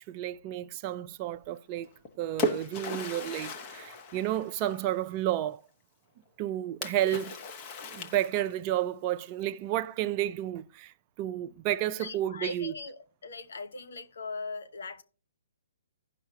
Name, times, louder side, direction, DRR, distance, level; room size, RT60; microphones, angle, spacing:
voice 1, 0.0-1.9 2.2-5.6 6.4-7.3 7.9-12.7, right 13 dB, 30° right, 0.4 m, -31 dB
Splash splatter, 1.8-5.0 6.8-8.7, equal, 30° left, 1.0 m, -36 dB
voice 2, 12.0-15.0, left 3 dB, 70° left, 0.9 m, -40 dB
15.5 x 5.6 x 2.8 m
hypercardioid pair, 140°, 0 cm